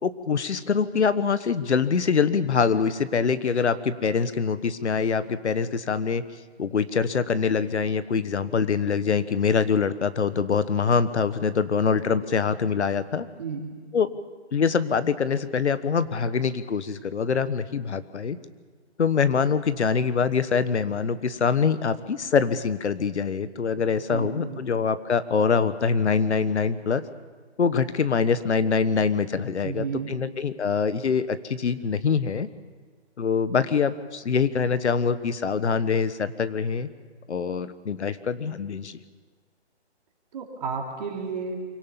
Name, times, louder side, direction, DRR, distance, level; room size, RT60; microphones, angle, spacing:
voice 1, 0.0-6.2 6.6-13.3 13.9-14.1 14.5-18.4 19.0-27.0 27.6-32.5 33.2-36.9 37.3-39.0, left 6 dB, 75° left, 13 dB, 1.4 m, -24 dB
voice 2, 13.4-13.7 24.1-24.6 29.6-30.1 40.3-41.6, right 5 dB, 40° right, 0 dB, 3.3 m, -32 dB
25.0 x 17.5 x 7.2 m, 1.5 s
hypercardioid pair, 165°, 34 cm